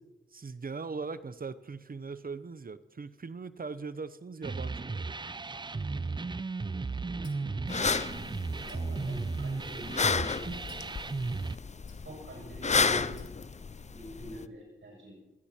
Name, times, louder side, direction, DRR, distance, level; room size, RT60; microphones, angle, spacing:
voice 1, 0.3-5.0, right 4 dB, 50° right, 14 dB, 0.8 m, -40 dB
sound 1, 4.4-11.6, right 3 dB, 25° right, 0.4 m, -35 dB
voice 2, 7.1-7.7 8.6-10.5 10.8-11.4 12.1-13.2 13.9-15.2, right 1 dB, 85° right, -2 dB, 7.4 m, -46 dB
sound 2, 7.2-8.3 8.7-10.0 10.7-11.1 11.9-12.4 13.2-13.8, left 3 dB, 80° left, 2.0 m, -56 dB
sound 3, 7.7-14.4, left 5 dB, 35° left, 0.5 m, -32 dB
28.5 x 9.9 x 4.5 m, 1.0 s
wide cardioid pair, 70°, 20 cm